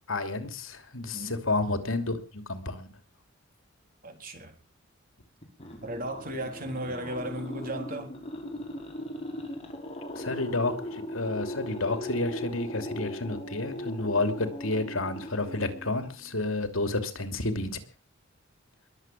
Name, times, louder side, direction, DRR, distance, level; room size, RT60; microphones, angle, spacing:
voice 1, 0.1-2.9 10.1-17.8, left 2 dB, 85° left, 2.9 m, -30 dB
voice 2, 4.0-4.6 5.8-8.1, right 1 dB, 45° right, 3.8 m, -35 dB
sound 1, 5.4-16.5, left 1 dB, 30° left, 5.0 m, -38 dB
21.5 x 8.1 x 7.4 m
head